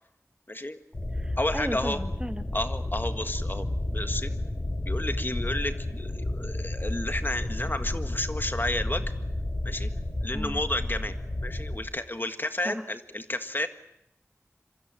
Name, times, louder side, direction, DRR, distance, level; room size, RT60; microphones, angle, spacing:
voice 1, 0.5-0.8 1.4-2.0 2.5-4.3 4.9-9.1 9.6-9.9 10.2-11.1 11.4-13.7, left 1 dB, 40° left, 8 dB, 1.7 m, -31 dB
sound 1, 0.9-11.8, left 1 dB, 60° left, 4.6 m, -31 dB
voice 2, 1.1-2.4 10.3-10.6 12.6-12.8, right 1 dB, 20° right, 9 dB, 1.5 m, -35 dB
26.5 x 24.0 x 7.5 m, 0.79 s
wide cardioid pair, 45°, 5 cm